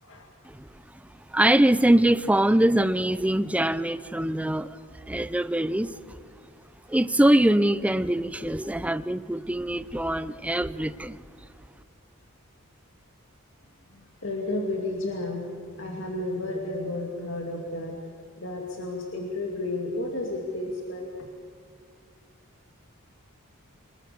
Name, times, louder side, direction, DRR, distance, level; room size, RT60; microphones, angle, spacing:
voice 1, 1.3-4.8 5.1-6.2 6.9-11.2, right 1 dB, 5° right, 15 dB, 0.5 m, -23 dB
voice 2, 13.9-18.0 18.4-21.1, left 2 dB, 60° left, 0 dB, 2.5 m, -32 dB
25.0 x 21.0 x 6.9 m, 2.1 s
head